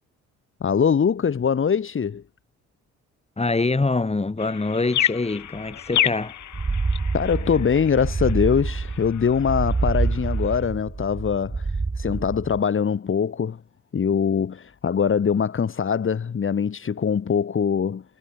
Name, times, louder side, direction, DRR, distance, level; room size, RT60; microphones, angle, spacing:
voice 1, 0.6-2.2 7.1-13.6 13.9-18.0, left 7 dB, 40° left, 3.1 m, -23 dB
voice 2, 3.4-6.4, left 3 dB, 20° left, 7.1 m, -24 dB
sound 1, 4.4-10.6, left 11 dB, 70° left, 6.5 m, -30 dB
sound 2, 6.4-12.6, right 3 dB, 20° right, 2.2 m, -27 dB
cardioid pair, 90°, 30 cm